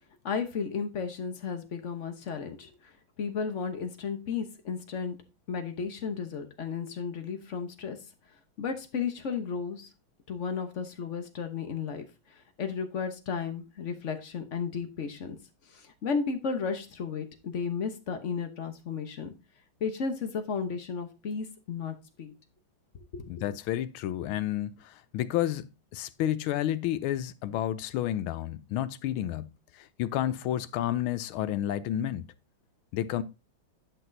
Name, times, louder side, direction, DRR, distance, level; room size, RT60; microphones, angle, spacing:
voice 1, 0.2-2.9 3.2-5.2 5.5-8.0 8.6-9.9 10.3-12.0 12.3-15.4 15.7-19.3 19.8-22.3 23.1-23.3, left 5 dB, 50° left, 1.0 m, -34 dB
voice 2, 23.3-29.5 29.8-32.3 32.9-33.2, left 12 dB, 85° left, 1.4 m, -31 dB
11.0 x 5.9 x 2.6 m
omnidirectional pair, 2.3 m